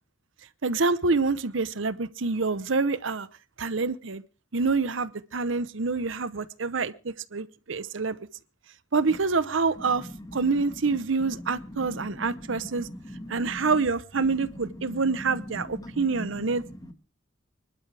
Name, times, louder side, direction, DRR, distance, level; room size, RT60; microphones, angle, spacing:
voice 1, 0.6-3.3 3.6-4.2 4.5-8.2 8.9-12.9 13.3-16.6, right 4 dB, 80° right, 0.9 m, -27 dB
voice 2, 9.8-13.8 14.2-16.9, left 1 dB, 20° left, 1.6 m, -41 dB
25.5 x 12.0 x 3.4 m
head